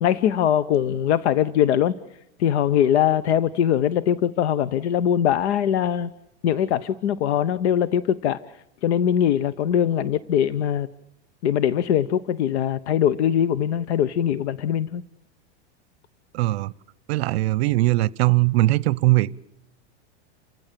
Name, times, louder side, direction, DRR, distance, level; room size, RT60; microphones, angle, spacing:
voice 1, 0.0-1.9 2.4-6.1 6.4-8.4 8.8-10.9 11.4-15.0, left 10 dB, 70° left, 0.9 m, -21 dB
voice 2, 16.3-16.7 17.1-19.4, right 18 dB, 65° right, 0.7 m, -20 dB
29.5 x 15.5 x 7.5 m
supercardioid pair, 145°, 35 cm